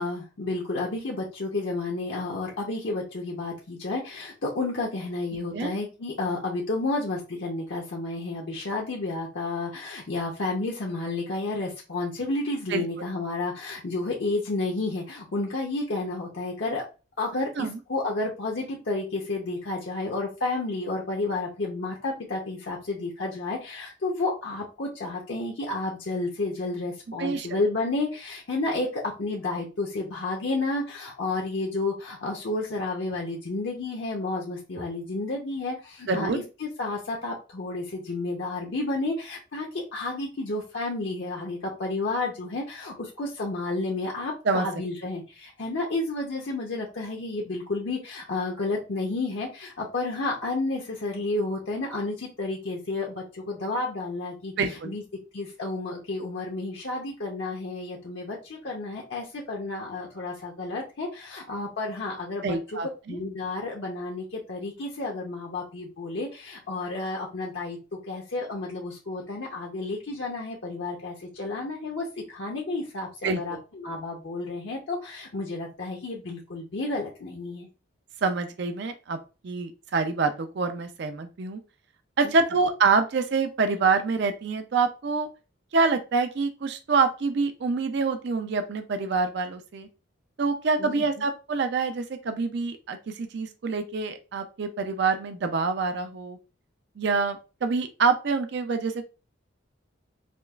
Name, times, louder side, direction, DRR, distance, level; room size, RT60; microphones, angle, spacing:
voice 1, 0.0-16.8 17.2-55.0 55.3-62.6 63.1-77.7 82.2-82.3 90.8-91.3, left 2 dB, 60° left, -2 dB, 0.6 m, -31 dB
voice 2, 36.1-36.4 44.5-44.7 54.6-54.9 62.4-63.2 73.2-73.6 78.2-79.2 79.4-81.6 82.2-85.3 85.7-89.9 90.4-96.4 97.0-99.0, right 4 dB, 55° right, 7 dB, 0.4 m, -26 dB
5.0 x 2.3 x 2.3 m, 0.32 s
head